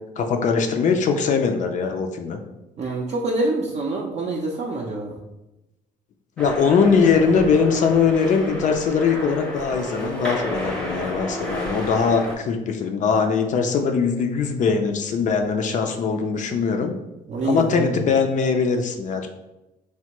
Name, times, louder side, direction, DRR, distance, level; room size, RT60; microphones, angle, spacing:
voice 1, 0.2-2.4 6.4-17.0 17.4-19.3, left 5 dB, 50° left, 4 dB, 0.4 m, -21 dB
voice 2, 2.8-5.1 17.3-17.9, right 2 dB, 40° right, -2 dB, 0.4 m, -26 dB
sound 1, 6.4-12.3, equal, 5° left, 0.6 m, -31 dB
3.3 x 2.2 x 2.9 m, 0.97 s
cardioid pair, 110°, 17 cm